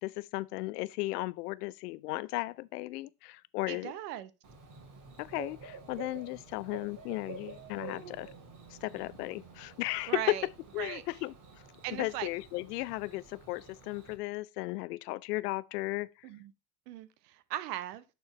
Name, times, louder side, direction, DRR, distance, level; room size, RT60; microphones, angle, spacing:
voice 1, 0.0-3.9 5.2-8.3 8.7-10.4 10.7-11.3 11.9-16.1, left 20 dB, 70° left, 0.6 m, -35 dB
voice 2, 3.7-4.3 10.1-10.5 10.8-11.0 11.8-12.3 16.2-16.5 16.9-18.0, right 12 dB, 70° right, 1.0 m, -38 dB
Bird / Cricket, 4.4-14.2, right 5 dB, 40° right, 2.8 m, -49 dB
9.5 x 4.5 x 3.1 m
hypercardioid pair, 80°, 48 cm